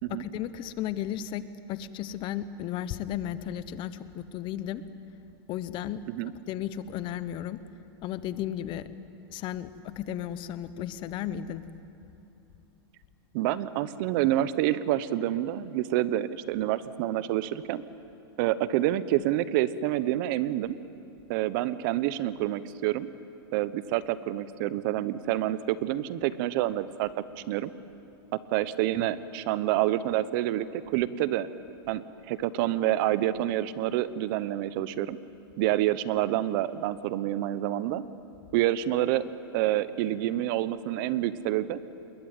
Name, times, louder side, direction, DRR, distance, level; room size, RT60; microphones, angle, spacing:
voice 1, 0.1-4.8 5.5-6.0 6.5-7.6 8.0-8.9 9.3-11.6, left 11 dB, 40° left, 14 dB, 1.1 m, -34 dB
voice 2, 13.3-17.8 18.4-20.8 21.3-23.1 23.5-27.7 28.3-31.5 31.9-35.2 35.6-38.0 38.5-39.2 39.5-41.8, right 13 dB, 55° right, 16 dB, 1.0 m, -28 dB
27.5 x 22.0 x 9.1 m, 2.8 s
supercardioid pair, 140°, 13 cm